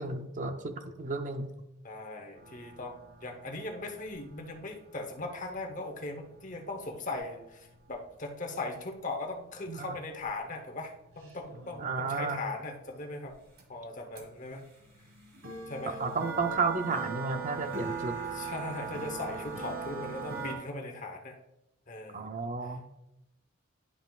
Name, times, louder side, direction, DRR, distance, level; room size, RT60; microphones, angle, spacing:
voice 1, 0.0-1.5 9.7-10.0 11.8-12.4 15.9-18.2 22.1-22.8, right 4 dB, 40° right, 7 dB, 0.5 m, -32 dB
voice 2, 1.8-13.3 13.7-14.7 15.7-16.0 18.3-21.4 21.9-22.3, left 2 dB, 40° left, 3 dB, 0.9 m, -39 dB
sound 1, 2.4-7.9 9.6-9.7 10.2-10.3 10.5-12.0 13.3-13.4 13.6-13.7 14.2-20.6, right 5 dB, 85° right, 1.6 m, -41 dB
11.0 x 5.8 x 2.4 m, 0.89 s
head